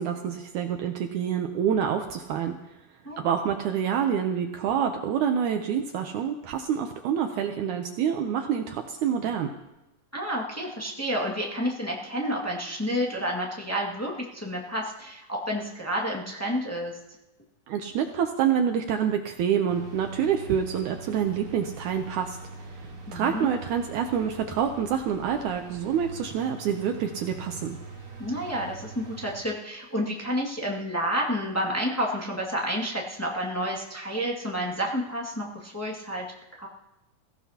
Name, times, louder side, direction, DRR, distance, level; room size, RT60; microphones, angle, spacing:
voice 1, 0.0-2.6 3.2-9.5 17.7-22.7 23.1-27.8, right 8 dB, 75° right, 5 dB, 2.0 m, -27 dB
voice 2, 10.1-17.0 23.1-23.5 28.2-36.3 36.6-36.7, equal, 10° left, -3 dB, 0.7 m, -30 dB
sound 1, 19.7-29.4, right 2 dB, 40° right, 3.9 m, -43 dB
22.0 x 16.0 x 2.9 m, 1.0 s
omnidirectional pair, 4.0 m